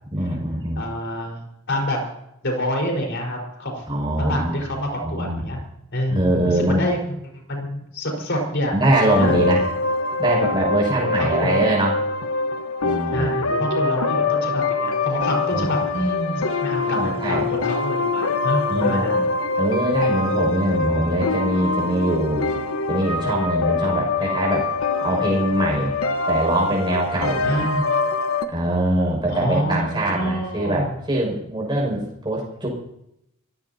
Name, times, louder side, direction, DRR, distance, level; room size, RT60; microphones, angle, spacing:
voice 1, 0.1-0.8 3.9-4.6 5.0-5.4 6.1-6.8 8.7-9.7 10.2-11.9 12.8-13.5 15.5-15.8 16.8-17.5 18.7-19.3 19.6-22.4 22.9-24.7 25.0-25.9 26.3-27.7 28.5-32.7, right 1 dB, 20° right, -2 dB, 6.2 m, -23 dB
voice 2, 0.8-1.4 1.7-2.0 2.4-3.8 4.2-5.6 5.9-7.0 7.5-8.7 9.2-9.3 10.9-11.7 13.1-19.2 27.4-27.9 29.3-31.0, equal, 55° left, 1 dB, 4.8 m, -27 dB
sound 1, 8.9-28.5, left 3 dB, 75° left, 1.3 m, -24 dB
25.5 x 16.0 x 2.9 m, 0.80 s
head